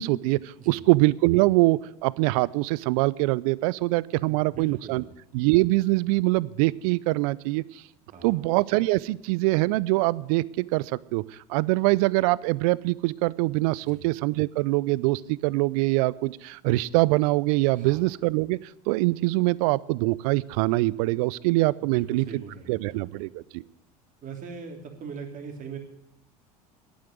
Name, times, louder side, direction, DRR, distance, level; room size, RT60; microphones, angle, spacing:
voice 1, 0.0-5.0 5.3-7.6 8.2-11.2 11.5-18.6 18.9-22.2 22.7-23.6, right 21 dB, 65° right, 22 dB, 0.5 m, -24 dB
voice 2, 4.2-5.1 8.1-8.5 13.8-14.1 17.7-18.1 21.8-23.3 24.2-25.8, right 5 dB, 40° right, 3 dB, 3.1 m, -41 dB
11.0 x 8.8 x 9.4 m, 0.79 s
hypercardioid pair, 75°, 20 cm